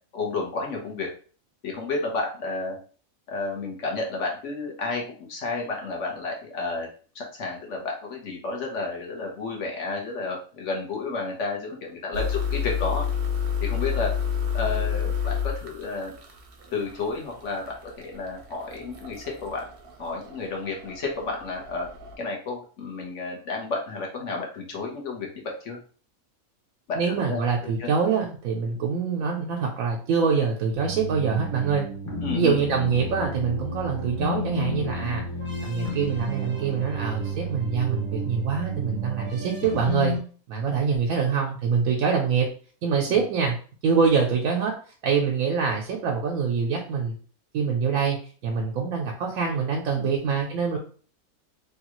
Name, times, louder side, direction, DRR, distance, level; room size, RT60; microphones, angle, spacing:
voice 1, 0.1-1.1 1.6-2.8 3.3-6.9 7.1-13.0 13.6-14.1 14.5-16.1 16.7-19.7 20.0-21.9 22.2-25.8 26.9-27.9 32.2-32.6 40.7-40.8 43.1-43.3 50.0-50.1, left 3 dB, 60° left, -1 dB, 1.2 m, -31 dB
sound 1, 12.1-22.2, left 7 dB, 55° right, 0.7 m, -30 dB
voice 2, 26.9-31.9 32.3-35.2 35.6-40.1 40.5-42.5 42.8-43.6 43.8-44.7 45.0-47.2 47.5-48.2 48.4-50.8, right 5 dB, 80° right, 0 dB, 1.1 m, -25 dB
sound 2, 30.7-40.2, equal, 25° left, 1.0 m, -31 dB
3.3 x 2.3 x 3.0 m, 0.41 s
omnidirectional pair, 1.4 m